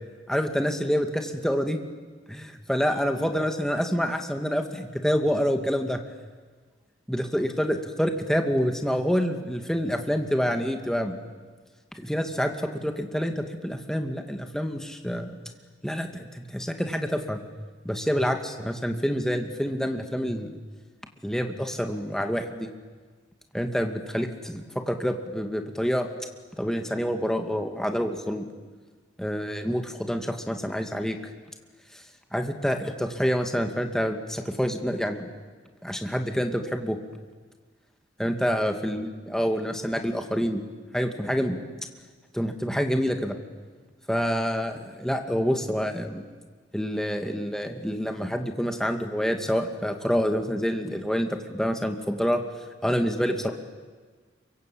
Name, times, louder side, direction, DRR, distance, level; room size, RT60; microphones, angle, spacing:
voice 1, 0.3-1.8 2.3-6.0 7.1-11.2 11.9-15.4 15.8-17.4 17.8-20.5 21.2-22.7 23.5-26.1 26.6-28.5 29.2-31.2 32.3-35.3 35.8-37.0 38.2-40.6 40.9-41.6 42.3-43.4 44.1-46.2 46.7-52.4 52.8-53.5, equal, 5° left, 5 dB, 2.2 m, -27 dB
28.5 x 24.0 x 8.7 m, 1.4 s
head